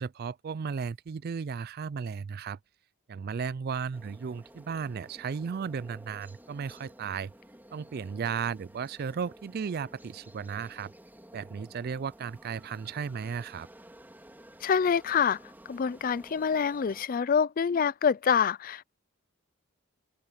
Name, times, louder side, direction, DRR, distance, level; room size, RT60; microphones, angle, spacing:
voice 1, 0.0-2.6 3.1-7.3 7.7-10.9 11.3-13.7, right 6 dB, 45° right, 0.3 m, -35 dB
sound 1, 3.9-17.1, right 1 dB, 10° right, 3.7 m, -53 dB
voice 2, 14.6-15.4 15.7-18.9, left 6 dB, 40° left, 0.4 m, -26 dB
head